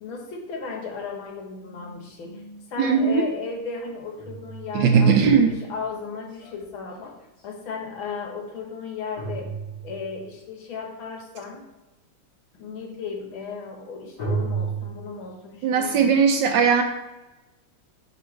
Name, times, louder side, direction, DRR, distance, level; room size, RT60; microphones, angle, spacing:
voice 1, 0.0-7.2 7.4-9.5 9.8-11.6 12.5-16.3, left 5 dB, 75° left, 1 dB, 1.9 m, -35 dB
voice 2, 2.8-3.2 4.7-5.5 15.6-16.8, right 6 dB, 75° right, 5 dB, 1.1 m, -18 dB
sound 1, 3.8-7.4 9.2-10.3 14.2-14.8, right 5 dB, 55° left, 2.8 m, -33 dB
7.1 x 5.3 x 3.2 m, 1.0 s
omnidirectional pair, 2.3 m